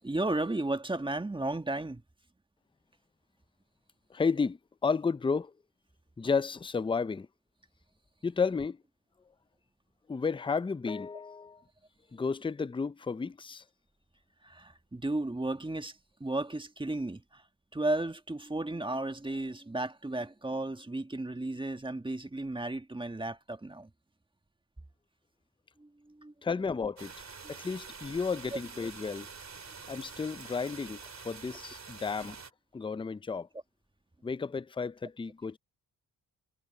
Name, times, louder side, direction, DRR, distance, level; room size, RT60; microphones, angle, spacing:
voice 1, 0.0-2.0 14.4-17.4 17.7-23.9 25.8-26.3 27.4-27.5 28.5-28.6, right 2 dB, 10° right, 1.5 m, -34 dB
voice 2, 4.1-5.5 6.2-7.3 8.2-8.8 10.1-11.6 12.1-13.6 26.4-29.3 29.9-32.4 32.7-33.5 34.2-35.6, left 5 dB, 15° left, 0.5 m, -32 dB
sound 1, 27.0-32.5, right 5 dB, 40° right, 2.8 m, -47 dB
cardioid pair, 85°, 41 cm